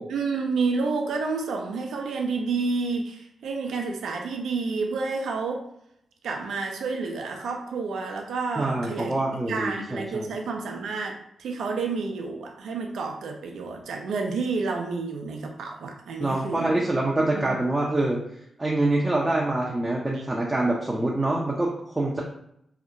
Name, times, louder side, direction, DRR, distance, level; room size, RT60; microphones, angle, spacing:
voice 1, 0.0-5.6 6.2-9.1 9.5-16.7 17.3-17.5, right 4 dB, 80° right, 3 dB, 0.4 m, -29 dB
voice 2, 8.6-10.3 16.2-18.2 18.6-22.2, right 2 dB, 20° right, -3 dB, 0.5 m, -25 dB
2.7 x 2.1 x 2.5 m, 0.73 s
supercardioid pair, 40°, 0 cm